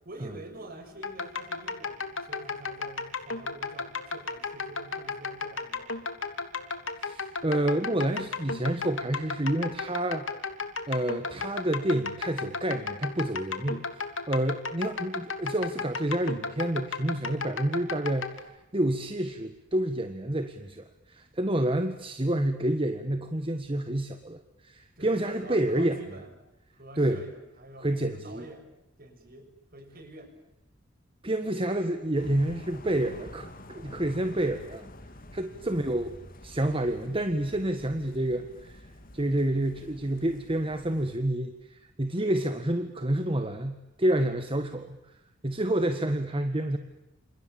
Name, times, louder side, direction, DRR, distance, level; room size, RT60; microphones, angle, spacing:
voice 1, 0.0-6.0 25.0-26.4 26.7-28.7 29.0-30.3 35.6-35.8, right 2 dB, 50° right, 6 dB, 7.0 m, -47 dB
sound 1, 1.0-18.4, left 4 dB, 80° left, 3.1 m, -34 dB
voice 2, 7.0-10.3 10.9-18.5 18.7-26.0 27.0-27.2 27.8-28.5 31.2-34.9 35.3-36.2 36.4-38.9 39.1-45.0 45.4-46.8, right 1 dB, 25° right, 8 dB, 1.7 m, -29 dB
sound 2, 32.1-41.1, left 1 dB, 45° left, 2.3 m, -48 dB
29.5 x 28.0 x 7.2 m, 0.94 s
head